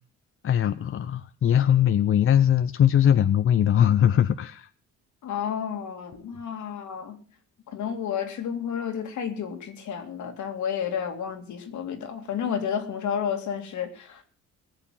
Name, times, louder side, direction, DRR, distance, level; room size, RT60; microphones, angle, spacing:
voice 1, 0.4-4.7, left 10 dB, 45° left, 0.6 m, -21 dB
voice 2, 5.2-7.2 7.7-14.2, left 8 dB, 75° left, 2.5 m, -31 dB
18.5 x 7.0 x 7.5 m
cardioid pair, 90°, 30 cm